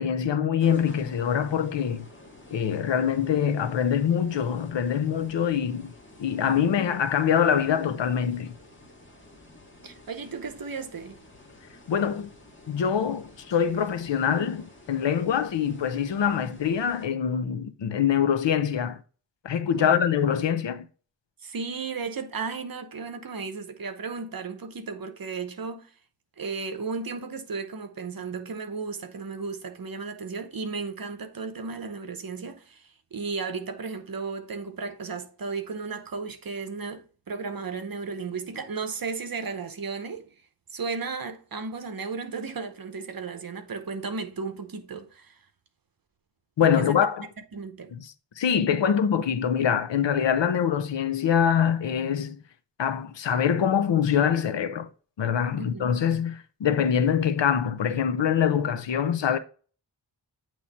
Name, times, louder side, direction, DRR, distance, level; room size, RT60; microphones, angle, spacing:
voice 1, 0.0-2.1 2.5-5.9 6.2-8.5 11.9-12.3 12.7-19.0 19.4-20.9 46.6-47.3 47.9-48.0 48.4-52.4 52.8-54.9 55.2-59.4, left 8 dB, 85° left, 0.7 m, -24 dB
sound 1, 0.6-17.1, left 1 dB, 25° left, 2.0 m, -51 dB
voice 2, 9.8-11.2 19.8-20.0 21.4-25.9 26.4-40.3 40.7-45.4 46.6-47.0 47.5-47.9 55.6-55.9, right 4 dB, 55° right, 0.9 m, -34 dB
8.6 x 3.1 x 4.2 m
wide cardioid pair, 115°, 43 cm